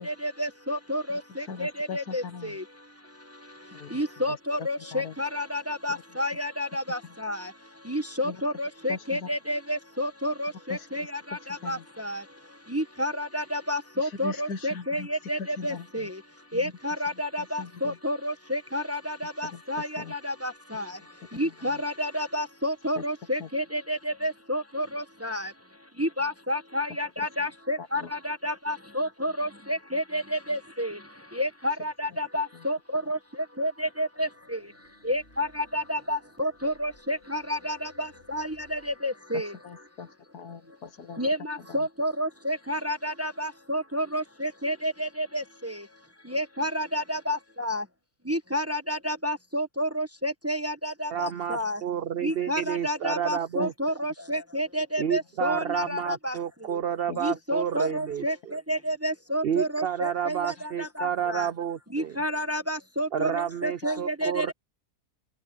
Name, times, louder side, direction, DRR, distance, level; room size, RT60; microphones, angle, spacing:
voice 1, 0.0-16.2 16.5-25.5 26.0-31.0 31.3-33.2 33.6-34.7 35.0-35.5 35.7-39.6 40.7-40.8 41.1-45.9 46.2-47.9 48.2-51.8 52.2-56.8 57.2-61.5 61.9-64.5, equal, 10° right, 1.1 m, -30 dB
voice 2, 1.5-2.6 3.7-4.0 4.3-4.4 4.9-5.1 5.9-6.0 8.2-8.4 8.9-9.3 10.7-10.9 11.6-11.8 14.0-15.1 15.4-16.1 16.5-16.7 17.4-18.0 19.4-19.6 20.0-20.1 21.3-21.4 21.7-21.8 23.0-23.1 23.4-23.5 28.0-28.1 39.3-40.1 40.3-41.2 41.7-41.8 53.6-53.7 55.5-55.6 57.1-57.2 63.8-64.0, left 5 dB, 70° left, 2.0 m, -39 dB
sound 1, 34.3-39.0, left 3 dB, 40° left, 7.6 m, -58 dB
voice 3, 51.1-53.7 55.0-58.5 59.4-62.2 63.1-64.5, right 9 dB, 75° right, 0.5 m, -30 dB
omnidirectional pair, 1.7 m